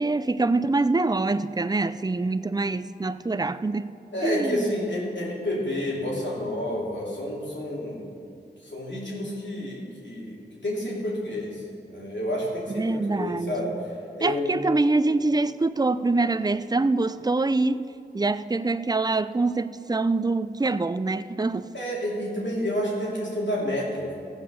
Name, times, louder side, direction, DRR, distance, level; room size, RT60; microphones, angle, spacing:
voice 1, 0.0-3.9 4.2-4.7 12.7-13.8 14.2-17.8 18.1-21.7, right 3 dB, 20° right, 0.4 m, -25 dB
voice 2, 4.1-8.0 8.6-10.4 10.6-11.6 11.9-13.7 14.2-14.5 21.7-24.2, left 1 dB, 85° left, 3.0 m, -29 dB
15.5 x 5.3 x 6.8 m
wide cardioid pair, 45°, 18 cm